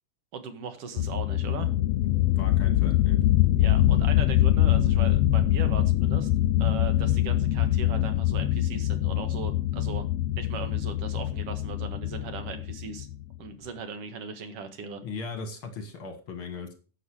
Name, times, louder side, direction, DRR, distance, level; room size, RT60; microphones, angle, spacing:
voice 1, 0.3-1.7 3.6-6.3 6.6-10.1 10.3-13.1 13.4-15.0, right 5 dB, 55° right, 8 dB, 2.3 m, -38 dB
sound 1, 1.0-13.4, left 13 dB, 80° left, 1.4 m, -24 dB
voice 2, 2.2-3.2 15.0-16.7, left 4 dB, 50° left, 8 dB, 1.9 m, -38 dB
11.5 x 8.3 x 4.7 m, 0.35 s
omnidirectional pair, 3.7 m